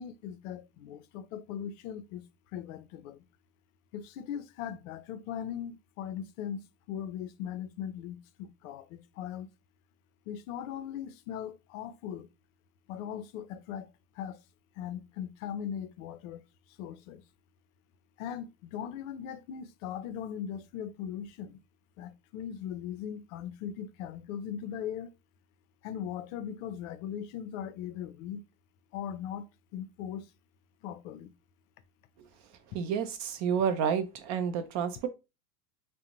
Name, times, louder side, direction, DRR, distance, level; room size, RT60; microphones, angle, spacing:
voice 1, 0.0-2.3 2.5-3.2 3.9-6.6 6.9-9.5 10.3-12.3 12.9-13.9 14.2-14.4 14.8-16.4 16.8-17.2 18.2-21.6 22.0-25.1 25.8-28.4 28.9-29.5 29.7-30.3 30.8-31.3, left 9 dB, 60° left, 0.5 m, -39 dB
voice 2, 32.7-35.1, right 7 dB, 40° right, 0.5 m, -30 dB
2.4 x 2.1 x 2.9 m
hypercardioid pair, 110°, 45 cm